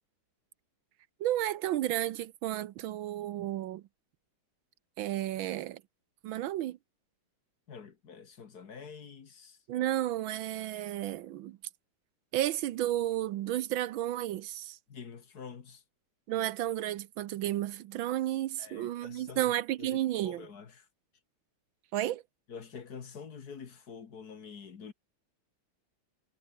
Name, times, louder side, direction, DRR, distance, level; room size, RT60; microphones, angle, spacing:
voice 1, 1.2-3.8 5.0-5.8 6.2-6.8 9.7-11.6 12.3-14.8 16.3-20.5 21.9-22.2, right 13 dB, 75° right, 1.4 m, -32 dB
voice 2, 7.7-9.6 14.9-15.8 18.6-20.0 20.2-20.9 22.5-24.9, left 6 dB, 50° left, 2.1 m, -47 dB
omnidirectional pair, 2.3 m